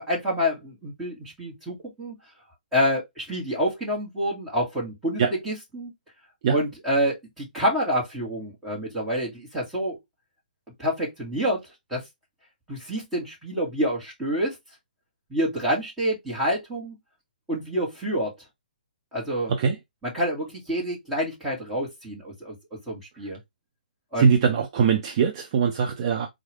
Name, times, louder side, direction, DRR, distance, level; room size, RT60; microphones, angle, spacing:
voice 1, 0.0-2.1 2.7-5.9 6.5-10.0 10.8-12.0 12.7-14.5 15.3-17.0 17.5-18.3 19.1-19.5 20.1-22.5 22.9-23.4 24.1-24.3, equal, 5° right, 1.7 m, -27 dB
voice 2, 19.5-19.8 23.2-23.3 24.2-26.3, right 6 dB, 35° right, 0.6 m, -22 dB
4.4 x 2.5 x 3.3 m
hypercardioid pair, 160°, 5 cm